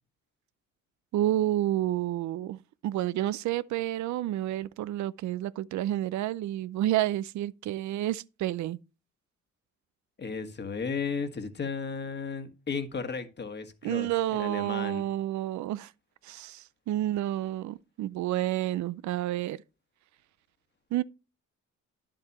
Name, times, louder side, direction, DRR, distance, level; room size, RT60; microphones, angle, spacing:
voice 1, 1.1-8.8 13.8-15.9 16.2-19.6 20.9-21.0, right 13 dB, 70° right, 0.5 m, -30 dB
voice 2, 10.2-15.1, left 5 dB, 35° left, 1.5 m, -34 dB
9.8 x 7.6 x 3.0 m
cardioid pair, 90°, 30 cm